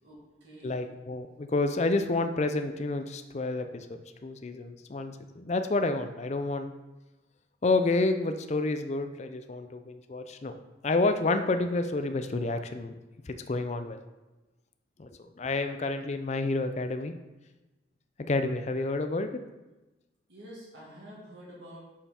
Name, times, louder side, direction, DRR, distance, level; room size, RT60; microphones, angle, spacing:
voice 1, 0.0-0.9 20.3-21.8, equal, 65° right, -6 dB, 2.1 m, -48 dB
voice 2, 0.6-3.9 4.2-6.7 7.6-10.6 10.8-12.9 13.3-14.0 15.0-17.1 18.3-19.4, left 2 dB, 35° left, 8 dB, 0.4 m, -29 dB
6.5 x 5.5 x 4.3 m, 1.1 s
head